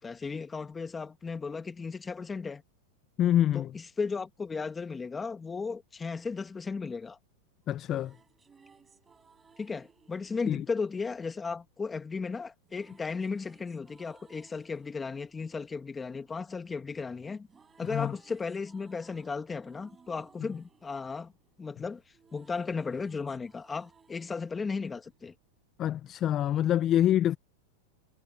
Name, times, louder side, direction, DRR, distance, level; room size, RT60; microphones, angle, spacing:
voice 1, 0.0-2.6 3.5-7.2 9.6-17.5 17.8-21.3 21.6-22.0 22.3-25.3, left 4 dB, 15° left, 1.9 m, -35 dB
voice 2, 3.2-3.7 7.7-8.1 10.5-10.6 17.8-18.1 25.8-27.4, left 11 dB, 30° left, 0.5 m, -26 dB
sound 1, 7.6-11.8 12.6-16.9 17.2-25.7, right 5 dB, 15° right, 8.0 m, -63 dB
supercardioid pair, 135°, 0 cm